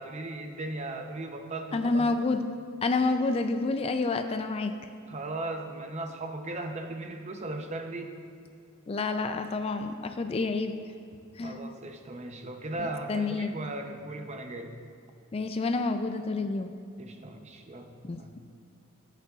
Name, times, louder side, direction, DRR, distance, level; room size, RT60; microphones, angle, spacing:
voice 1, 0.0-2.1 5.1-8.2 11.4-14.7 17.0-17.9 18.2-18.4, right 2 dB, 30° right, 5 dB, 0.6 m, -37 dB
voice 2, 1.7-2.4 2.8-4.7 8.9-10.7 11.4-11.6 12.8-13.5 15.3-16.7 18.0-18.4, left 3 dB, 30° left, 8 dB, 0.3 m, -29 dB
15.0 x 8.2 x 2.4 m, 2.5 s
head